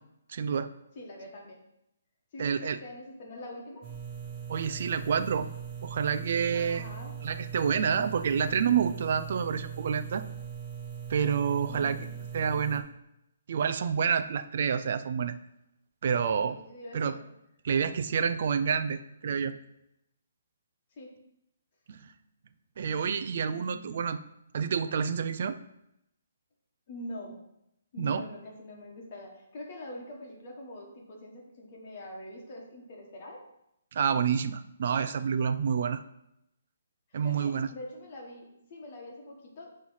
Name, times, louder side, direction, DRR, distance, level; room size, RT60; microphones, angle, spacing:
voice 1, 0.3-0.7 2.4-2.8 4.5-5.5 5.8-6.9 7.2-10.2 11.1-12.0 12.3-12.8 13.5-15.3 16.0-16.5 16.9-17.1 17.6-19.6 21.9-22.1 22.8-24.2 24.5-25.6 28.0-28.2 33.9-36.0 37.1-37.7, right 7 dB, 35° right, 11 dB, 0.4 m, -28 dB
voice 2, 0.9-1.6 2.3-3.9 6.5-7.2 11.7-12.6 16.3-17.3 21.0-21.1 26.9-27.4 27.9-33.5 37.1-39.7, left 1 dB, 25° left, -1 dB, 1.4 m, -44 dB
sound 1, 3.8-12.8, right 7 dB, 20° right, 0.9 m, -40 dB
8.3 x 3.2 x 5.6 m, 0.81 s
hypercardioid pair, 180°, 0 cm